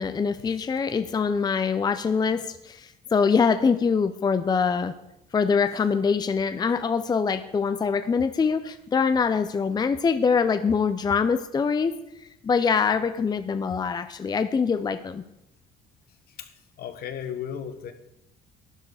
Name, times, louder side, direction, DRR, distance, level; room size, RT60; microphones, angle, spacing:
voice 1, 0.0-4.9 5.3-11.9 12.4-15.2, left 5 dB, 25° left, 11 dB, 0.6 m, -24 dB
voice 2, 16.3-17.9, left 8 dB, 65° left, 9 dB, 1.4 m, -36 dB
12.0 x 10.0 x 4.8 m, 0.85 s
cardioid pair, 110°, 17 cm